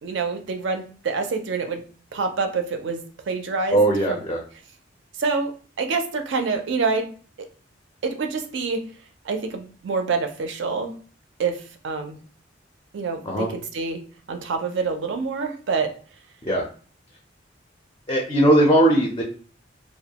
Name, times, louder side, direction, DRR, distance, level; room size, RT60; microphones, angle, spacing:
voice 1, 0.0-1.8 2.1-3.8 4.1-4.2 5.2-7.1 8.0-8.8 9.2-10.9 11.4-12.2 12.9-14.0 14.3-16.0, right 4 dB, 65° right, 5 dB, 0.4 m, -26 dB
voice 2, 3.7-4.4 13.2-13.5 16.4-16.6 18.1-19.2, right 1 dB, 20° left, -1 dB, 0.4 m, -19 dB
2.3 x 2.1 x 2.8 m, 0.42 s
head